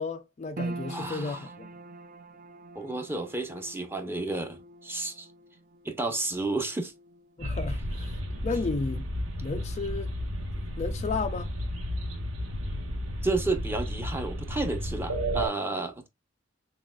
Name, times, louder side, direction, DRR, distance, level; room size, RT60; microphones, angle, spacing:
voice 1, 0.0-1.7 7.4-9.1 9.4-10.1 10.8-11.5, left 4 dB, 35° left, 0.4 m, -33 dB
sound 1, 0.6-13.0 13.2-14.2 14.6-14.7, right 2 dB, 45° right, 0.5 m, -45 dB
voice 2, 0.9-1.5 2.7-5.3 5.8-6.9 13.2-16.1, right 2 dB, 10° right, 0.7 m, -31 dB
sound 2, 7.4-15.5, equal, 85° right, 1.1 m, -33 dB
6.1 x 2.4 x 2.2 m
head